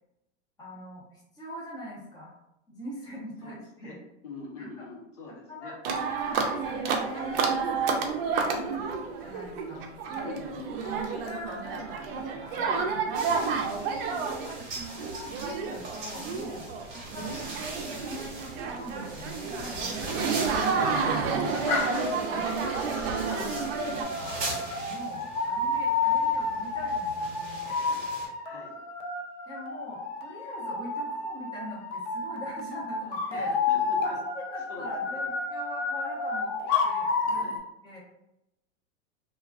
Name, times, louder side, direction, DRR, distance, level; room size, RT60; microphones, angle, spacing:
voice 1, 0.6-2.4 2.7-4.0 4.6-4.8 5.5-5.7 6.3-8.8 9.2-10.4 10.8-12.8 13.3-13.4 13.8-20.5 20.7-21.0 21.9-22.2 22.6-23.5 23.9-27.8 29.5-33.5 34.0-36.5 36.8-37.6 37.8-38.0, equal, 10° left, -6 dB, 0.8 m, -43 dB
voice 2, 3.4-4.0 4.2-6.1 10.2-10.8 11.6-11.9 13.3-13.6 21.0-22.5 28.4-28.8 33.3-34.2 34.7-35.2 37.3-37.6, left 3 dB, 85° left, -2 dB, 1.0 m, -44 dB
sound 1, 5.8-24.0, right 5 dB, 55° right, 0.5 m, -30 dB
sound 2, 13.1-28.3, right 2 dB, 30° right, 1.1 m, -41 dB
sound 3, 21.4-37.6, left 4 dB, 40° left, 0.5 m, -31 dB
2.4 x 2.3 x 2.3 m, 0.86 s
hypercardioid pair, 125°, 36 cm